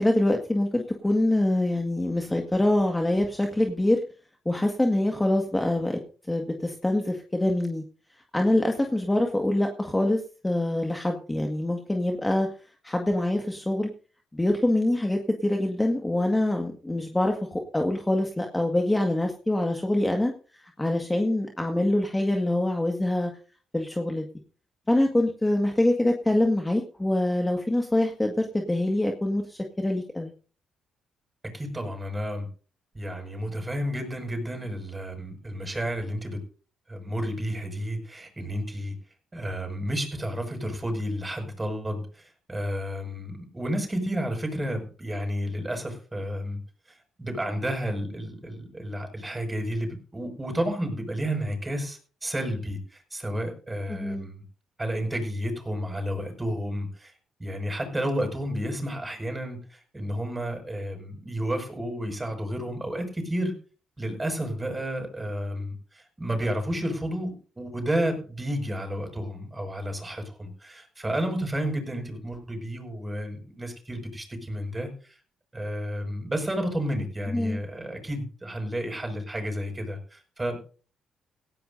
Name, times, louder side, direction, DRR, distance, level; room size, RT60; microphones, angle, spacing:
voice 1, 0.0-4.0 4.5-6.0 6.3-7.8 8.3-12.5 12.8-13.9 14.3-20.3 20.6-23.3 23.7-24.3 24.9-30.3 53.9-54.3 77.3-77.6, left 1 dB, 10° left, 2 dB, 1.9 m, -25 dB
voice 2, 31.5-32.5 32.9-36.4 36.9-38.9 39.3-46.6 47.2-54.4 54.8-57.1 57.4-63.5 64.0-75.1 75.5-80.6, equal, 15° right, 4 dB, 6.2 m, -31 dB
18.0 x 16.0 x 2.7 m, 0.39 s
cardioid pair, 90°, 0 cm